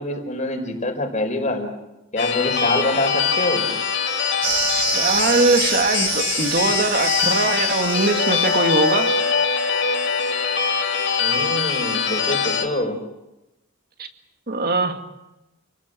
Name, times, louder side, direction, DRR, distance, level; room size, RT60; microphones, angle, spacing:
voice 1, 0.0-1.7 2.1-3.7 11.2-13.0, left 2 dB, 35° left, 5 dB, 4.5 m, -25 dB
sound 1, 2.2-12.6, left 6 dB, 60° left, 2.9 m, -23 dB
sound 2, 4.4-9.2, right 9 dB, 65° right, 1.8 m, -28 dB
voice 2, 4.7-9.2 14.0-14.1 14.5-15.0, right 3 dB, 45° right, 5 dB, 2.2 m, -21 dB
29.5 x 19.5 x 7.7 m, 0.98 s
head